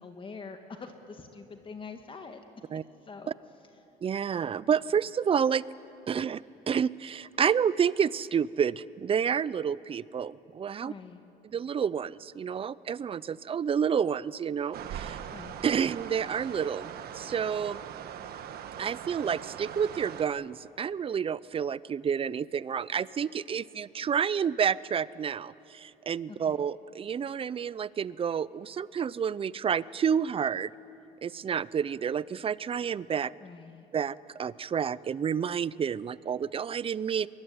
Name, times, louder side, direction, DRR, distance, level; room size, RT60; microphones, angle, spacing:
voice 1, 0.0-2.4 3.0-3.3 10.8-11.2 15.3-15.6 26.3-26.6 33.4-33.9, left 4 dB, 30° left, 6 dB, 1.7 m, -45 dB
voice 2, 4.0-5.6 6.1-6.4 6.7-10.9 11.5-15.2 15.6-17.8 18.8-30.7 31.2-33.3 33.9-37.3, right 7 dB, 35° right, 20 dB, 0.5 m, -29 dB
sound 1, 14.7-20.2, right 9 dB, 65° right, 1.5 m, -41 dB
23.5 x 22.0 x 9.6 m, 2.8 s
cardioid pair, 110°, 17 cm